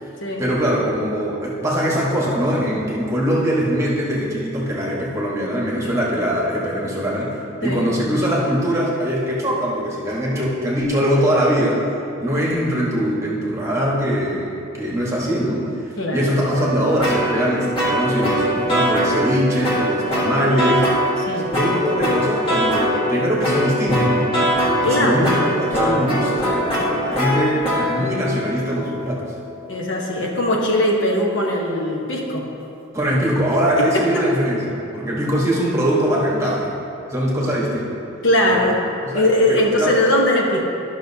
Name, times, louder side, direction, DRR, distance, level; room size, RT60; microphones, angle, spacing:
voice 1, 0.4-11.8 12.2-15.7 16.1-20.9 21.5-24.4 24.9-29.3 32.9-36.7 37.1-37.9 38.5-38.6 39.1-40.1, equal, 15° right, -5 dB, 1.3 m, -22 dB
voice 2, 16.0-16.4 21.2-21.5 24.8-25.3 29.7-32.5 33.8-34.3 38.2-38.8 39.1-40.6, left 1 dB, 65° left, -1 dB, 1.0 m, -20 dB
sound 1, 16.5-19.4 19.6-21.1 21.5-23.0 23.4-30.4, equal, 25° left, 1.7 m, -22 dB
13.0 x 6.2 x 2.8 m, 2.7 s
head